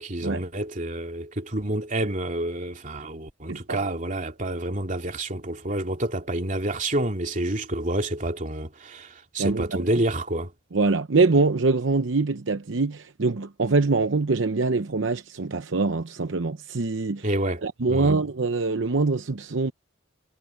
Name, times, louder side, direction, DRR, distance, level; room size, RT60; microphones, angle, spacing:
voice 1, 0.0-10.5 17.2-18.2, right 1 dB, 40° right, 2.9 m, -28 dB
voice 2, 10.7-17.3 17.6-19.7, right 3 dB, 75° right, 0.8 m, -24 dB
head